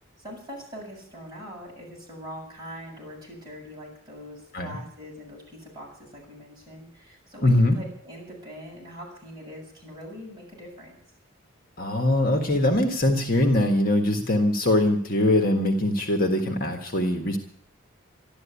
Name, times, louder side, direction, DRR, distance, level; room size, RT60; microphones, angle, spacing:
voice 1, 0.2-11.0, equal, 20° right, -4 dB, 7.5 m, -42 dB
voice 2, 7.4-7.8 11.8-17.4, left 1 dB, 45° left, 4 dB, 1.7 m, -22 dB
13.0 x 12.0 x 8.5 m, 0.64 s
head